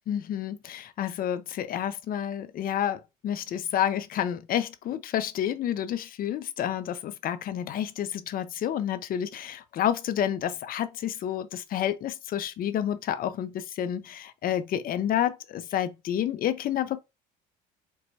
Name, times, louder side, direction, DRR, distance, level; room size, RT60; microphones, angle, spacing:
voice 1, 0.1-17.0, left 10 dB, 45° left, 0.5 m, -29 dB
4.5 x 2.1 x 2.7 m
hypercardioid pair, 75°, 20 cm